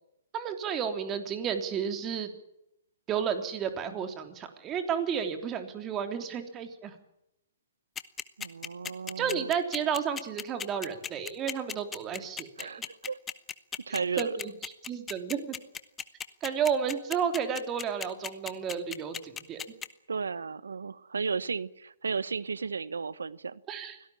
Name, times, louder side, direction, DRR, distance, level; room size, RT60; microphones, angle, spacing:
voice 1, 0.3-2.3 3.1-6.9 9.2-12.8 14.2-15.6 16.4-19.6 23.7-24.0, right 7 dB, 25° right, 7 dB, 3.4 m, -32 dB
sound 1, 8.0-19.9, left 7 dB, 15° left, 1.2 m, -36 dB
voice 2, 8.4-9.5 12.6-13.2 13.9-14.3 20.1-23.6, right 5 dB, 85° right, 19 dB, 1.0 m, -34 dB
24.5 x 17.5 x 8.7 m, 0.83 s
hypercardioid pair, 135°, 0 cm